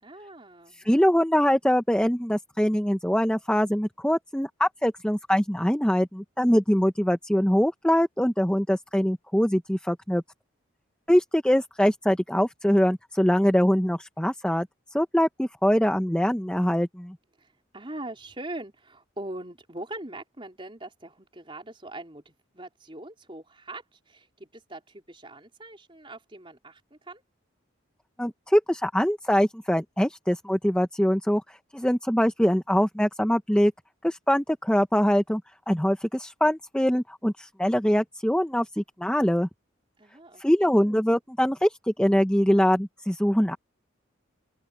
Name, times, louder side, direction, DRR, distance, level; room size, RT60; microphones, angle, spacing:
voice 1, 0.0-0.9 17.4-27.2 40.0-41.0, right 1 dB, 25° right, 4.3 m, -42 dB
voice 2, 0.8-10.2 11.1-17.2 28.2-33.7 34.0-35.4 35.7-39.5 40.4-43.6, equal, 5° left, 0.8 m, -23 dB
open air
head